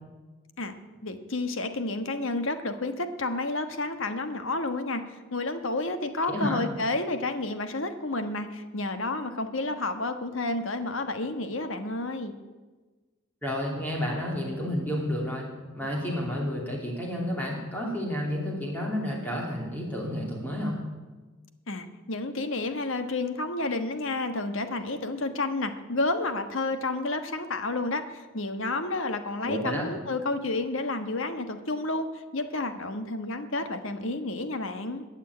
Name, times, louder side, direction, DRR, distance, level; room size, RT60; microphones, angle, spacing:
voice 1, 0.6-12.4 21.7-35.0, left 2 dB, 70° left, 8 dB, 1.3 m, -30 dB
voice 2, 6.3-6.6 13.4-20.8 29.4-29.9, equal, 10° left, -2 dB, 2.9 m, -31 dB
21.0 x 7.4 x 8.3 m, 1.3 s
head